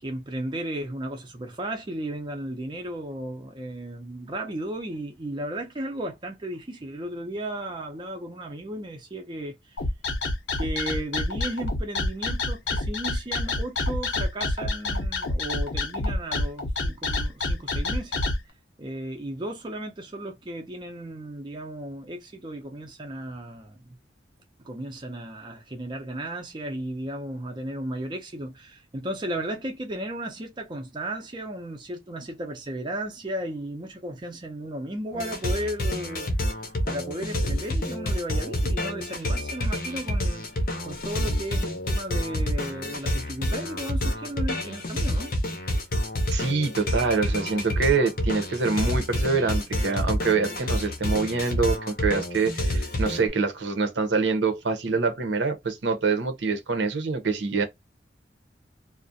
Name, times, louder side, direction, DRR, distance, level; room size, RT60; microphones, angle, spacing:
voice 1, 0.0-9.8 10.6-18.2 18.8-23.8 24.6-40.5 40.8-45.3, right 1 dB, 25° right, 0.4 m, -35 dB
sound 1, 9.8-18.4, left 2 dB, 90° left, 0.7 m, -27 dB
sound 2, 35.1-53.3, equal, 50° left, 0.6 m, -28 dB
voice 2, 46.3-57.6, right 4 dB, 75° right, 0.6 m, -25 dB
2.4 x 2.0 x 2.6 m
head